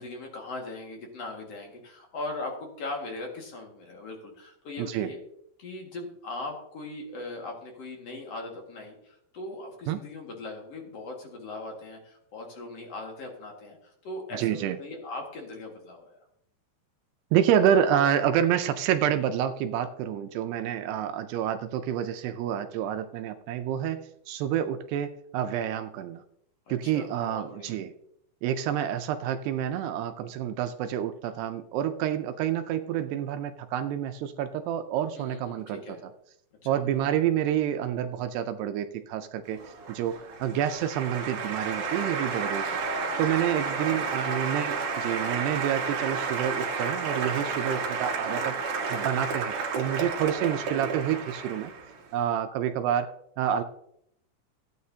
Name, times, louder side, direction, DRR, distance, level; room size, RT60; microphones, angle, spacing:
voice 1, 0.0-5.2 5.6-16.2 26.7-27.8 35.2-36.0 36.6-36.8 43.8-44.5, left 2 dB, 50° left, 1 dB, 2.2 m, -40 dB
voice 2, 4.8-5.1 9.9-10.0 14.3-14.8 17.3-24.0 24.3-26.2 26.7-27.9 28.4-36.1 36.7-39.6 39.9-42.6 43.2-48.6 48.9-51.7 52.1-53.6, right 10 dB, 80° right, 8 dB, 2.6 m, -28 dB
Applause, 39.5-52.0, right 4 dB, 60° right, 2.5 m, -31 dB
16.0 x 9.4 x 2.8 m, 0.73 s
omnidirectional pair, 5.0 m